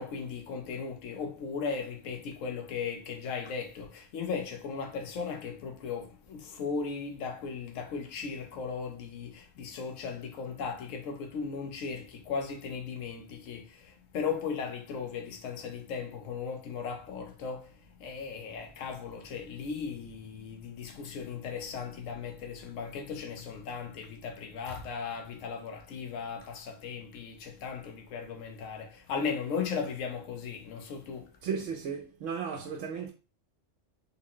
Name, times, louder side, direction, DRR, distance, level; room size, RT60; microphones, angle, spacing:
voice 1, 0.0-13.8 14.1-17.7 18.0-31.3, left 5 dB, 90° left, 1.0 m, -37 dB
voice 2, 31.4-33.1, right 6 dB, 75° right, 0.9 m, -35 dB
3.9 x 2.0 x 3.7 m
omnidirectional pair, 1.3 m